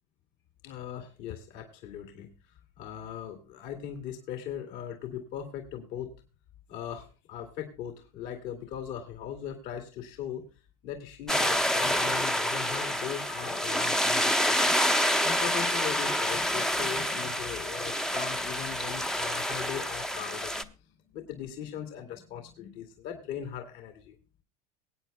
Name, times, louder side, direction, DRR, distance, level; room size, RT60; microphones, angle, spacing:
voice 1, 0.6-2.3 2.8-6.1 6.7-10.4 10.8-14.8 15.1-20.7 21.1-24.2, left 9 dB, 65° left, 5 dB, 2.3 m, -39 dB
sound 1, 11.3-20.6, equal, 5° left, 0.6 m, -28 dB
23.0 x 8.8 x 2.2 m, 0.33 s
supercardioid pair, 115°, 19 cm